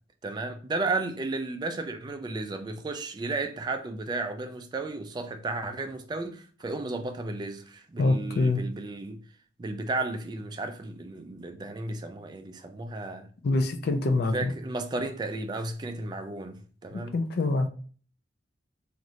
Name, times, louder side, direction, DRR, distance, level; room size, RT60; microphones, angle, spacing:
voice 1, 0.2-9.2 9.6-13.3 14.3-16.6 16.8-17.2, right 2 dB, 25° right, 0.3 m, -33 dB
voice 2, 8.0-8.6 13.4-14.5 17.1-17.7, left 2 dB, 60° left, 0.4 m, -25 dB
3.1 x 2.5 x 2.6 m
head